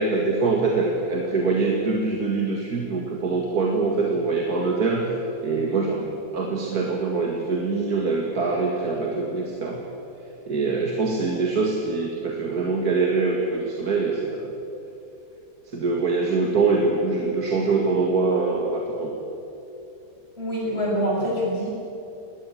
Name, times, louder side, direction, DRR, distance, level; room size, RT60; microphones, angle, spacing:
voice 1, 0.0-5.1 5.4-9.8 10.5-14.5 15.7-19.1, right 3 dB, 65° right, 1 dB, 2.4 m, -24 dB
voice 2, 20.4-21.7, equal, 35° left, -4 dB, 7.6 m, -25 dB
21.5 x 18.5 x 8.9 m, 2.8 s
omnidirectional pair, 1.7 m